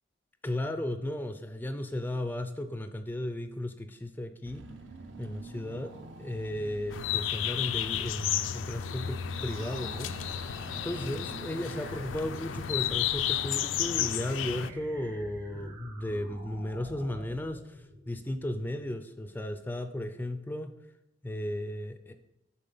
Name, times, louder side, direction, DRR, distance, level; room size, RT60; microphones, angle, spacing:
voice 1, 0.4-4.6 5.2-5.9 6.2-10.5 10.8-20.7 21.2-22.1, left 1 dB, 10° left, 8 dB, 0.3 m, -35 dB
Car / Engine, 4.5-13.6, right 3 dB, 70° right, 0.6 m, -48 dB
sound 1, 6.9-14.7, left 10 dB, 80° left, 0.4 m, -32 dB
sound 2, 9.3-18.8, equal, 50° right, 1.0 m, -49 dB
7.4 x 4.0 x 5.4 m, 0.86 s
head